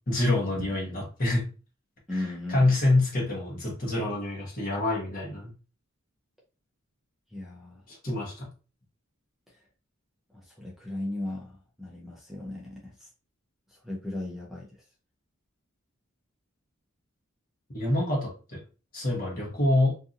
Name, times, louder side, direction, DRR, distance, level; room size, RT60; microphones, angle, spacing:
voice 1, 0.1-1.5 2.1-5.5 7.9-8.5 17.7-18.6 18.9-20.0, left 2 dB, 40° left, -2 dB, 1.1 m, -26 dB
voice 2, 2.1-2.7 7.3-7.8 10.3-13.1 13.7-14.8, left 2 dB, ahead, -4 dB, 0.5 m, -36 dB
2.6 x 2.6 x 2.5 m, 0.34 s
head